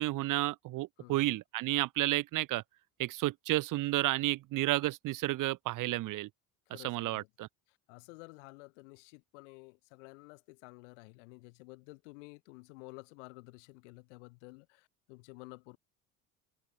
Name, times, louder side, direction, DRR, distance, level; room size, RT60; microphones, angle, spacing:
voice 1, 0.0-2.6 3.0-6.3 6.8-7.5, right 17 dB, 60° right, 1.4 m, -31 dB
voice 2, 1.0-1.4 6.7-7.3 7.7-15.8, left 27 dB, 90° left, 4.3 m, -52 dB
supercardioid pair, 100°, 35 cm